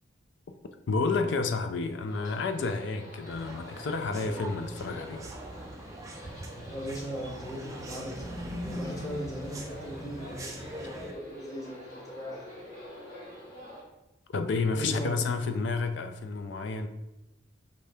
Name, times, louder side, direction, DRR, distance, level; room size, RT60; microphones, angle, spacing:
voice 1, 0.9-5.3 14.3-16.9, left 4 dB, 55° left, 0.4 m, -30 dB
sound 1, 2.1-13.8, equal, 40° left, 1.2 m, -47 dB
sound 2, 3.3-11.1, right 1 dB, 15° right, 0.3 m, -42 dB
voice 2, 6.5-12.6 14.7-15.2, equal, 15° left, 0.8 m, -38 dB
5.2 x 2.7 x 3.3 m
head